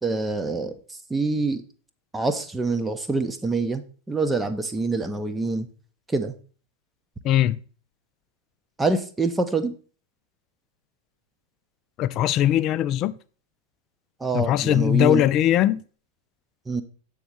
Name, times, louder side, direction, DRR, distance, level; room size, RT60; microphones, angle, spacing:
voice 1, 0.0-0.8 1.1-1.6 2.1-5.7 6.1-6.4 8.8-9.7 14.2-15.2 16.7-16.8, right 3 dB, 10° right, 0.7 m, -25 dB
voice 2, 7.2-7.6 12.0-13.1 14.3-15.8, left 12 dB, 35° left, 0.4 m, -20 dB
7.9 x 3.7 x 5.9 m
figure-of-eight pair, 90°, 0 cm